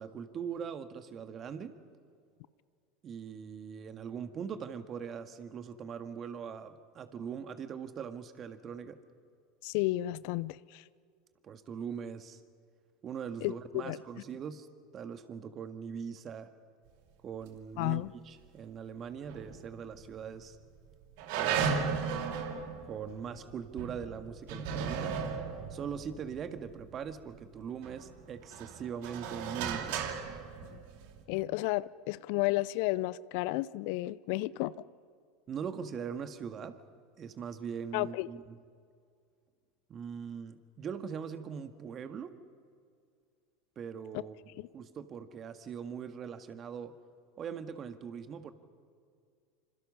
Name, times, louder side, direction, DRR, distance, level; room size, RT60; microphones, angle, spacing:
voice 1, 0.0-1.8 3.0-9.0 11.4-12.4 13.0-14.7 14.9-16.5 17.2-20.6 21.4-22.1 22.8-25.2 25.7-30.1 35.5-36.8 37.2-38.6 39.9-42.3 43.8-44.4 44.7-46.9 47.4-48.5, right 7 dB, 35° right, 1.8 m, -41 dB
voice 2, 9.6-10.8 13.4-14.0 17.8-18.1 31.3-34.7 37.9-38.3, left 19 dB, 60° left, 0.5 m, -32 dB
sound 1, 19.3-20.1 20.4-20.5 21.2-27.3 27.8-31.2, right 6 dB, 60° right, 2.6 m, -36 dB
27.5 x 26.5 x 5.6 m
hypercardioid pair, 80°, 0 cm